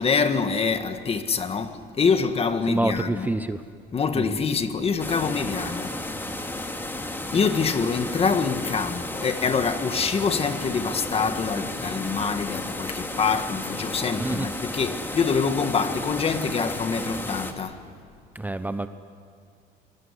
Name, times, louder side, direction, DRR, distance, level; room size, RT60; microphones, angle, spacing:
voice 1, 0.0-3.4 3.9-6.0 7.3-17.8, left 5 dB, 35° left, 1.7 m, -25 dB
voice 2, 2.7-3.6 4.2-4.3 14.2-14.5 18.3-18.9, right 2 dB, 10° right, 0.8 m, -26 dB
sound 1, 5.0-17.5, left 1 dB, 10° left, 2.4 m, -33 dB
24.0 x 21.5 x 9.9 m
cardioid pair, 110°, 17 cm